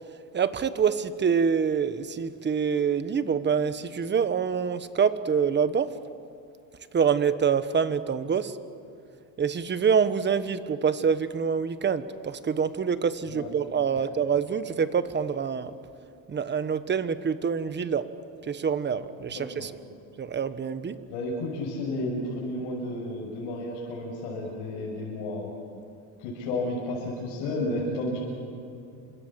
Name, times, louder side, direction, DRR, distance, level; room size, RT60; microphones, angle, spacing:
voice 1, 0.3-5.9 6.9-8.6 9.4-15.7 16.3-18.1 18.4-19.7 20.2-21.0, right 6 dB, 25° right, 12 dB, 1.3 m, -26 dB
voice 2, 19.3-19.7 21.1-25.6 26.2-28.2, left 1 dB, 90° left, -3 dB, 6.6 m, -32 dB
29.5 x 26.5 x 7.6 m, 2.6 s
cardioid pair, 135°, 41 cm